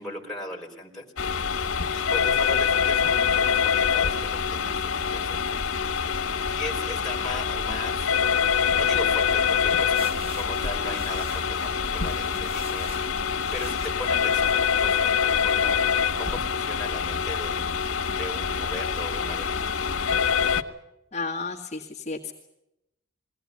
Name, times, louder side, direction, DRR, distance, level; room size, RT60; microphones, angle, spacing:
voice 1, 0.0-1.6 1.9-13.2 13.5-15.9 16.2-19.7, left 1 dB, ahead, 0 dB, 4.2 m, -38 dB
sound 1, 1.2-20.6, left 6 dB, 90° left, 1.5 m, -25 dB
sound 2, 9.9-16.4, right 2 dB, 30° right, 1.0 m, -45 dB
voice 2, 21.1-22.3, left 3 dB, 30° left, -1 dB, 1.9 m, -32 dB
23.0 x 17.5 x 9.7 m, 0.87 s
head